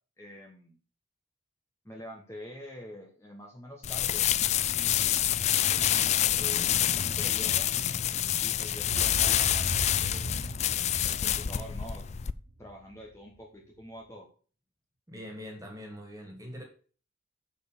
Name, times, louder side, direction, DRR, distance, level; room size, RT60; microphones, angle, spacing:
voice 1, 0.2-0.8 1.8-4.3 4.6-5.4 6.4-7.7 8.4-10.3 11.0-12.1 12.6-14.3, equal, 15° left, 1.2 m, -46 dB
sound 1, 3.8-12.3, left 11 dB, 35° left, 0.3 m, -27 dB
sound 2, 8.9-13.2, right 1 dB, 60° right, 1.1 m, -39 dB
voice 2, 15.1-16.6, equal, 15° right, 2.4 m, -43 dB
7.1 x 5.4 x 6.6 m
head